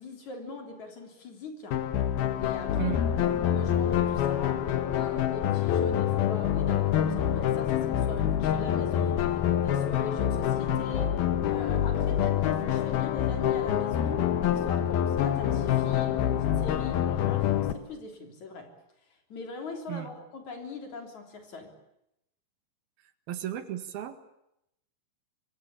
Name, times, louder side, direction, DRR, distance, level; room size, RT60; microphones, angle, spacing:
voice 1, 0.0-1.8 2.4-18.7 19.1-21.7, left 3 dB, 50° left, 5 dB, 4.8 m, -41 dB
sound 1, 1.7-17.7, left 10 dB, 85° left, 3.4 m, -26 dB
voice 2, 23.3-24.2, right 12 dB, 85° right, 9 dB, 3.7 m, -34 dB
26.5 x 23.5 x 8.6 m, 0.82 s
omnidirectional pair, 4.2 m